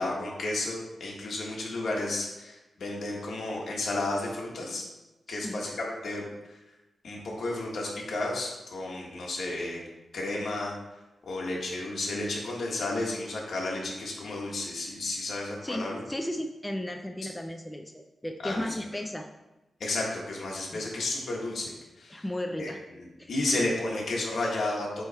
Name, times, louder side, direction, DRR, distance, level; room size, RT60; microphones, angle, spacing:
voice 1, 0.0-4.8 5.3-6.2 6.5-6.6 7.0-9.8 10.1-10.7 11.2-16.0 18.4-18.7 19.8-22.2 22.6-25.0, left 2 dB, 65° left, -2 dB, 1.6 m, -32 dB
voice 2, 5.3-5.6 15.6-19.3 20.7-20.8 22.1-22.8 23.2-23.3, left 1 dB, 10° left, 4 dB, 0.4 m, -35 dB
8.0 x 3.3 x 4.2 m, 1.1 s
wide cardioid pair, 135°, 0 cm